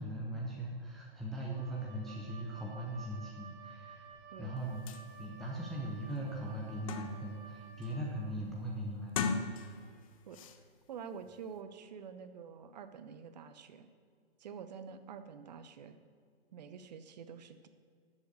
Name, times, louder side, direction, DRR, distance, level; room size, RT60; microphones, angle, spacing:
voice 1, 0.0-4.1 4.4-4.8 5.2-9.4, right 1 dB, ahead, -4 dB, 0.5 m, -40 dB
Wind instrument woodwind instrument, 1.5-8.2, right 5 dB, 20° right, 1.2 m, -54 dB
sound 1, 4.6-4.7 4.9-5.0 5.6-5.7 6.1-7.4 7.8-8.2 9.0-10.0 10.3-10.6, left 5 dB, 35° left, 0.7 m, -38 dB
voice 2, 10.9-13.9 14.4-16.0 16.5-17.7, right 6 dB, 40° right, 10 dB, 0.9 m, -47 dB
11.0 x 7.5 x 6.6 m, 2.1 s
hypercardioid pair, 135°, 31 cm